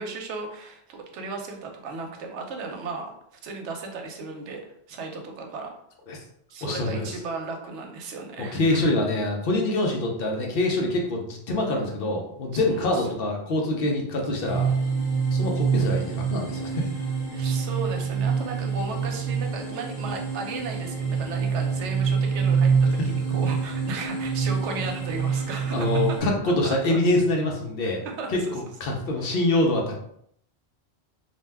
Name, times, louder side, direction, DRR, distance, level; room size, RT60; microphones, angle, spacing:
voice 1, 0.0-3.1 3.4-4.6 4.9-5.7 6.5-8.9 12.5-13.1 13.8-13.9 17.3-26.0 26.6-27.0 28.2-28.5, right 3 dB, 85° right, 3 dB, 0.9 m, -35 dB
voice 2, 6.6-7.2 8.4-14.7 15.3-16.9 25.7-28.0 28.3-28.4 28.8-29.9, left 2 dB, 60° left, 0 dB, 0.8 m, -25 dB
sound 1, 14.4-26.2, right 5 dB, 30° left, 1.0 m, -26 dB
2.6 x 2.2 x 3.3 m, 0.70 s
omnidirectional pair, 1.2 m